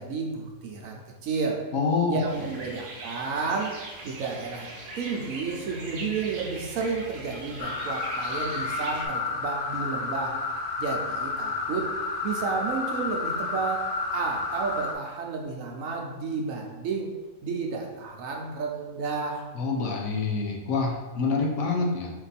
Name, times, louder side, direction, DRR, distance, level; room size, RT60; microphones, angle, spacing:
voice 1, 0.0-1.6 2.1-4.7 5.0-10.4 10.8-11.9 12.2-17.1 17.4-19.4, right 4 dB, 70° right, 1 dB, 1.0 m, -31 dB
voice 2, 1.7-2.2 19.5-22.1, left 4 dB, 65° left, -1 dB, 1.1 m, -26 dB
sound 1, 2.3-9.1, right 2 dB, 55° right, 0.9 m, -40 dB
sound 2, 7.6-14.9, left 3 dB, 85° left, 0.4 m, -31 dB
4.5 x 2.6 x 4.1 m, 1.2 s
omnidirectional pair, 1.6 m